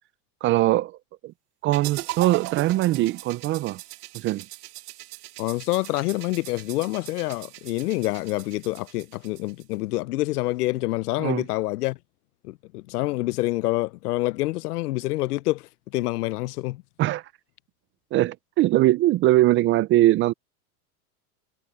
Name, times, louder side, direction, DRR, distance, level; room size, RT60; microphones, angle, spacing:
voice 1, 0.4-1.0 1.2-1.3 1.6-3.8 4.1-4.4 11.2-11.4 17.0-17.2 18.1-20.3, right 16 dB, 30° right, 0.4 m, -21 dB
sound 1, 1.7-9.8, right 19 dB, 75° right, 1.1 m, -39 dB
voice 2, 5.4-12.0 12.4-16.8, left 19 dB, 80° left, 0.7 m, -27 dB
supercardioid pair, 120°, 45 cm